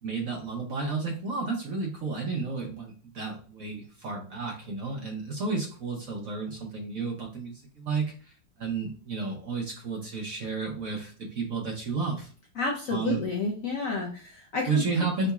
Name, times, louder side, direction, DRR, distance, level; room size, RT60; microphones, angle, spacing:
voice 1, 0.0-12.3 12.9-13.3 14.7-15.3, right 4 dB, 60° right, 1 dB, 1.0 m, -32 dB
voice 2, 12.6-14.8, left 3 dB, 60° left, 0 dB, 0.9 m, -30 dB
4.1 x 3.9 x 2.3 m, 0.40 s
omnidirectional pair, 2.1 m